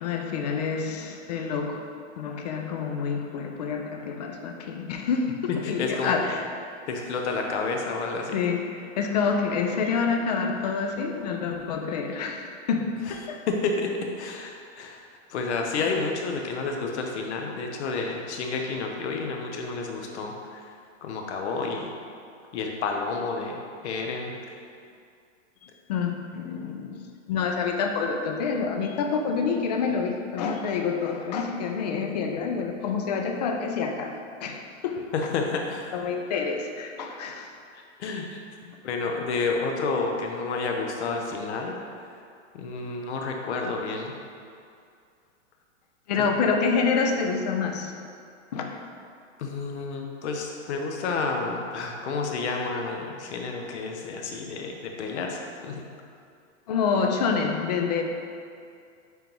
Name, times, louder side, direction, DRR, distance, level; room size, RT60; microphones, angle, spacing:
voice 1, 0.0-1.8 2.2-6.5 8.3-13.4 25.9-27.0 27.3-35.1 35.9-37.5 46.1-47.9 48.5-48.8 56.7-58.0, left 5 dB, 35° left, 3 dB, 0.5 m, -27 dB
voice 2, 5.5-6.2 6.9-8.4 13.5-13.9 14.2-15.0 15.3-20.6 21.0-21.9 22.5-24.3 35.1-35.9 37.7-38.4 38.8-41.8 42.5-44.2 46.2-46.3 49.4-55.8, left 4 dB, 60° left, 2 dB, 1.0 m, -30 dB
9.2 x 3.5 x 3.0 m, 2.4 s
supercardioid pair, 160°, 38 cm